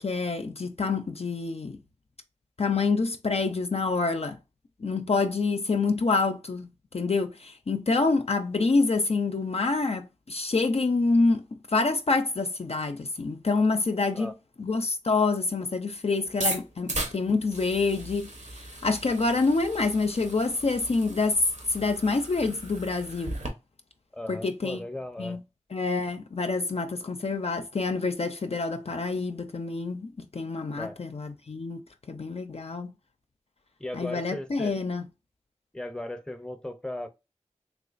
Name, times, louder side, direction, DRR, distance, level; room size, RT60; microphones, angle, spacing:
voice 1, 0.0-1.8 2.6-4.4 4.8-6.7 6.9-14.3 14.6-21.4 21.7-23.4 24.3-24.8 25.2-25.4 25.7-31.8 32.1-32.9 33.9-35.0, left 3 dB, 55° left, 0.4 m, -27 dB
sound 1, 16.3-23.5, right 2 dB, 80° right, 0.9 m, -37 dB
voice 2, 24.1-25.4 30.7-31.0 33.8-34.7 35.7-37.1, left 1 dB, 5° left, 0.6 m, -36 dB
3.4 x 3.1 x 2.4 m
wide cardioid pair, 45°, 12 cm